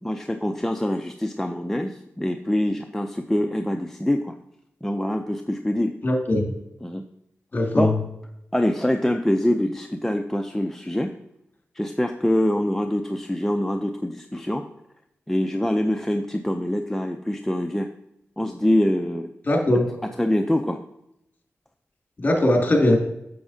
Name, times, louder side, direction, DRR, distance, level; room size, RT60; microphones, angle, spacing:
voice 1, 0.0-4.3 4.8-5.9 6.8-7.0 7.8-7.9 8.5-11.1 11.8-14.7 15.3-17.9 18.4-19.3 20.2-20.8, left 1 dB, 5° left, 4 dB, 0.5 m, -24 dB
voice 2, 6.0-6.4 7.5-8.0 19.5-19.9 22.2-23.0, left 1 dB, 35° left, 1 dB, 2.2 m, -20 dB
8.3 x 7.2 x 2.8 m, 0.81 s
cardioid pair, 55°, 5 cm